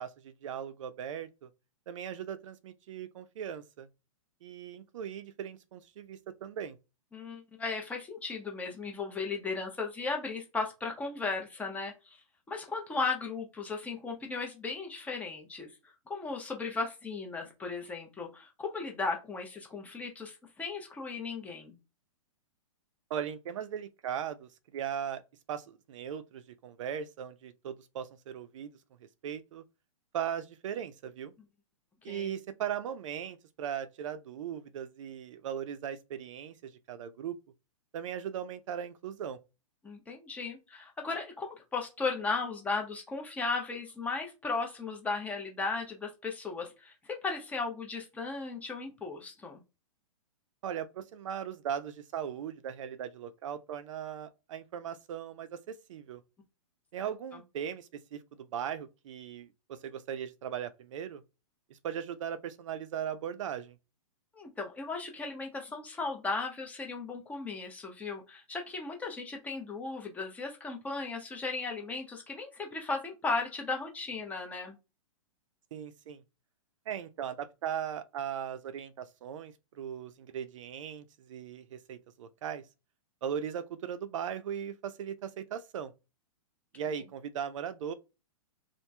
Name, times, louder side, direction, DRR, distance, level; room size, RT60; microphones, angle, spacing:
voice 1, 0.0-1.5 1.9-3.9 4.4-6.8 23.1-25.2 25.5-28.7 29.2-29.6 30.1-31.3 32.0-37.4 37.9-39.4 50.6-56.2 56.9-61.2 61.8-63.8 75.7-76.2 76.9-82.6 83.2-85.9 86.8-87.9, right 9 dB, 60° right, 0.4 m, -38 dB
voice 2, 7.1-12.2 12.5-15.7 16.1-21.8 32.1-32.4 39.8-49.6 64.3-74.8, left 4 dB, 10° left, 0.5 m, -36 dB
2.9 x 2.4 x 2.2 m
hypercardioid pair, 150°, 18 cm